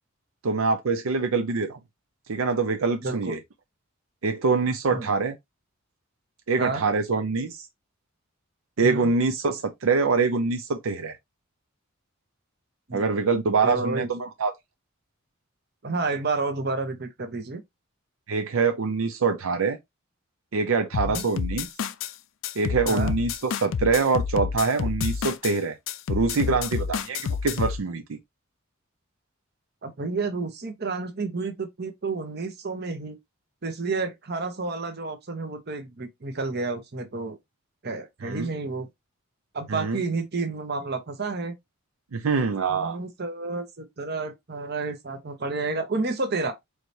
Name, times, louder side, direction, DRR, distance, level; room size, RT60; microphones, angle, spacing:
voice 1, 0.4-1.8 2.3-3.4 4.2-5.3 6.5-7.6 8.8-11.1 12.9-14.5 18.3-19.8 20.5-21.7 22.6-25.8 26.1-28.2 38.2-38.5 39.7-40.0 42.1-43.0, right 4 dB, 85° right, 0.5 m, -24 dB
voice 2, 3.0-3.4 4.9-5.1 6.6-6.8 8.8-9.1 12.9-13.0 13.6-14.1 15.8-17.6 21.0-21.2 22.9-23.1 29.8-33.2 33.6-37.4 37.8-38.9 39.5-41.5 42.7-46.6, right 3 dB, 50° right, 0.9 m, -30 dB
sound 1, 20.9-22.1 22.4-25.5 25.9-27.8, left 6 dB, 65° left, 0.4 m, -29 dB
4.6 x 3.3 x 2.7 m
head